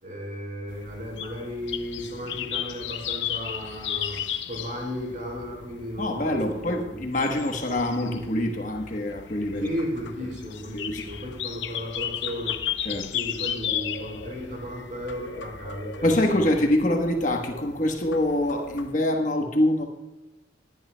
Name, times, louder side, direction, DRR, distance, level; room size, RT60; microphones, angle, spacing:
voice 1, 0.0-4.2 4.5-6.9 9.6-12.5 13.1-16.1, equal, 45° right, -3 dB, 4.4 m, -35 dB
sound 1, 0.7-18.9, left 9 dB, 80° left, 0.6 m, -35 dB
voice 2, 6.0-9.7 10.7-11.2 12.8-13.1 16.0-19.9, left 1 dB, 45° left, 2 dB, 1.2 m, -25 dB
20.0 x 11.0 x 2.2 m, 1.0 s
head